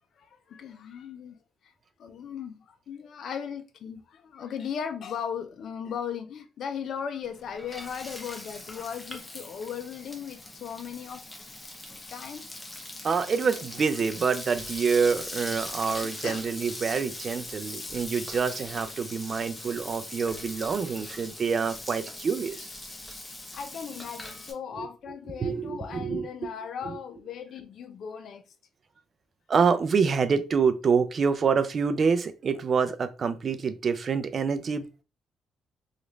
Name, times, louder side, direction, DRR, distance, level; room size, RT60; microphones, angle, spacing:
voice 1, 0.2-1.7 2.0-11.2 12.1-12.5 15.9-16.5 23.5-28.4, left 7 dB, 65° left, 0.4 m, -37 dB
Frying (food), 7.2-24.5, left 2 dB, 20° left, 0.8 m, -41 dB
voice 2, 13.0-22.7 24.8-24.9 25.4-26.3 26.8-27.0 29.5-35.0, right 5 dB, 45° right, 0.4 m, -26 dB
3.1 x 2.4 x 3.1 m
cardioid pair, 90°, 0 cm